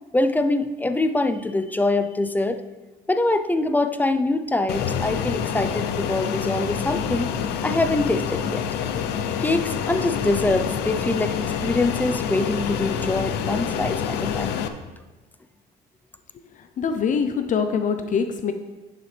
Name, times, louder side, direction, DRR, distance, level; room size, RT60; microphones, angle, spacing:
voice 1, 0.1-2.6 3.1-7.3 7.6-8.7 9.4-14.6, left 2 dB, 10° left, 8 dB, 0.5 m, -24 dB
Fixed-wing aircraft airplane, 4.7-14.7, left 8 dB, 90° left, 0.7 m, -27 dB
voice 2, 16.5-18.5, left 6 dB, 50° left, 7 dB, 0.6 m, -24 dB
11.0 x 7.0 x 3.3 m, 1.2 s
cardioid pair, 110°, 17 cm